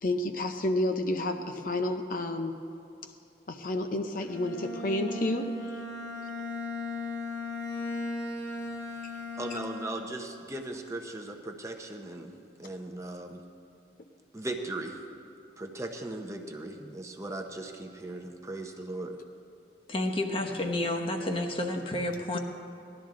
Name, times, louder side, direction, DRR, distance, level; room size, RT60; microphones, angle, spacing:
voice 1, 0.0-2.5 3.5-5.8 9.5-9.6 22.3-22.4, left 1 dB, 50° left, 5 dB, 0.6 m, -30 dB
Bowed string instrument, 4.2-10.3, left 2 dB, 85° left, 2.4 m, -37 dB
voice 2, 9.3-12.3 12.6-13.4 14.3-15.0 15.6-19.2, right 2 dB, 15° right, 3 dB, 0.7 m, -38 dB
voice 3, 19.9-22.4, left 1 dB, 30° left, 4 dB, 1.0 m, -30 dB
17.5 x 12.0 x 3.8 m, 2.7 s
head